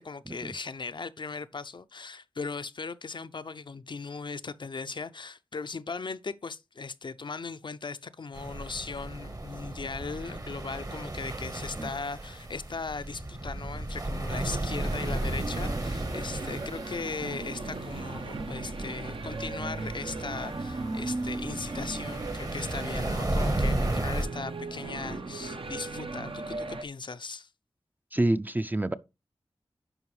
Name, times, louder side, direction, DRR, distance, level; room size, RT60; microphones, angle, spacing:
voice 1, 0.0-27.5, left 4 dB, 55° left, 0.5 m, -38 dB
sound 1, 8.3-24.3, right 1 dB, 40° right, 1.1 m, -34 dB
sound 2, 14.3-26.8, right 3 dB, 70° right, 0.8 m, -37 dB
voice 2, 28.1-28.9, right 1 dB, 20° right, 0.4 m, -28 dB
11.0 x 4.7 x 3.2 m
cardioid pair, 50°, 9 cm